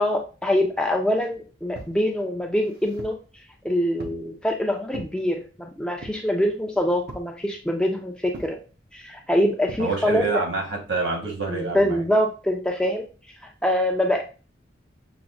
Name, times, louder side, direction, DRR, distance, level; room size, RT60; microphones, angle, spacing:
voice 1, 0.0-3.2 3.6-8.6 8.9-10.2 11.5-13.0 13.6-14.2, left 1 dB, 5° left, 1 dB, 0.4 m, -24 dB
sound 1, 1.7-2.0 2.6-3.2 4.0-4.3 4.9-5.2 6.0-6.3 7.1-7.4 8.3-8.6 9.7-9.9, right 2 dB, 55° right, 0.6 m, -41 dB
voice 2, 9.8-12.0, right 3 dB, 75° right, 0 dB, 1.3 m, -27 dB
5.8 x 2.1 x 2.5 m, 0.34 s
head